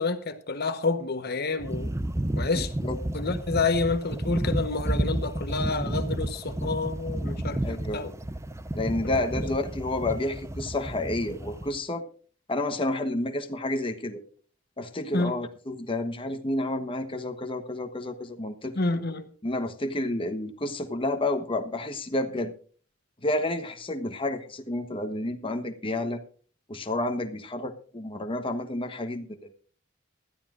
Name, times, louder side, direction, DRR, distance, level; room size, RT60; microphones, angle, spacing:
voice 1, 0.0-1.9 2.4-2.7 3.1-8.1 9.1-9.2 15.1-15.3 18.8-19.3, left 3 dB, 55° left, 1.1 m, -29 dB
sound 1, 1.6-11.8, right 1 dB, 15° right, 0.6 m, -31 dB
voice 2, 2.5-3.0 7.6-8.0 8.7-12.0 12.5-14.2 14.8-18.8 19.4-22.5 23.2-26.2 26.7-29.5, left 1 dB, 25° left, 1.2 m, -30 dB
20.0 x 13.0 x 2.5 m
head